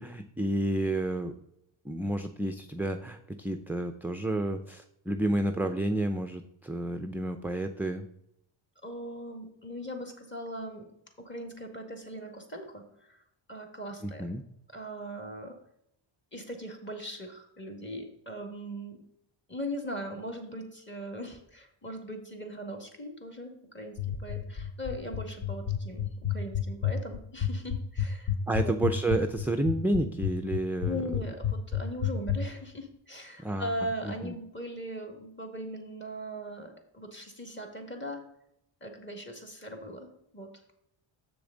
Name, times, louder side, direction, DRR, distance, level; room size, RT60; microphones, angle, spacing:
voice 1, 0.0-1.3 1.8-8.1 14.0-14.4 28.5-31.1 33.4-34.3, right 1 dB, 5° right, 6 dB, 0.4 m, -30 dB
voice 2, 8.8-10.9 11.2-13.2 13.5-14.3 14.7-15.5 16.3-19.0 19.5-28.7 30.8-38.2 38.8-40.1 40.3-40.5, equal, 25° left, 1 dB, 1.9 m, -39 dB
sound 1, 24.0-32.4, left 11 dB, 55° left, 0.7 m, -29 dB
7.2 x 6.9 x 3.8 m, 0.76 s
cardioid pair, 85°, 48 cm